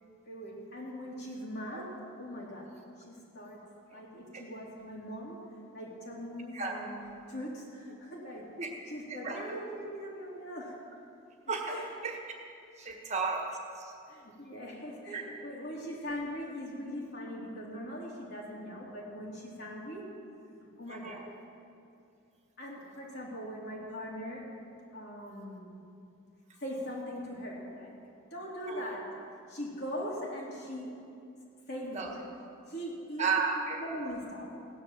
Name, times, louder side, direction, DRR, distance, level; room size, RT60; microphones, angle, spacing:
voice 1, 0.2-2.7 3.0-3.6 3.9-5.4 5.7-8.5 8.9-10.8 11.7-11.9 12.8-13.0 14.1-20.1 20.5-21.2 22.6-24.5 24.9-25.7 26.6-27.9 28.3-29.1 29.5-31.0 31.7-32.3 32.7-33.3 33.8-34.5, equal, 50° left, -3 dB, 3.3 m, -41 dB
voice 2, 11.5-12.2 12.8-13.9 15.1-15.2 20.9-21.2 28.7-28.8 31.9-32.1 33.2-33.8, right 4 dB, 35° right, 1 dB, 1.6 m, -33 dB
16.5 x 10.5 x 7.5 m, 2.6 s
head